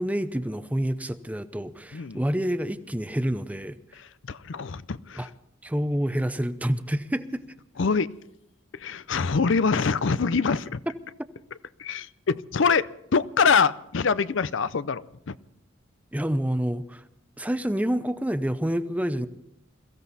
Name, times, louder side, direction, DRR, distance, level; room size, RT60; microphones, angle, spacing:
voice 1, 0.0-3.8 5.2-5.3 5.6-7.4 16.1-17.0 17.4-19.3, equal, 5° right, 12 dB, 0.6 m, -28 dB
voice 2, 4.0-5.3 7.8-8.1 8.7-10.8 11.8-15.4, left 5 dB, 60° left, 16 dB, 0.6 m, -25 dB
22.5 x 15.5 x 4.1 m, 0.81 s
head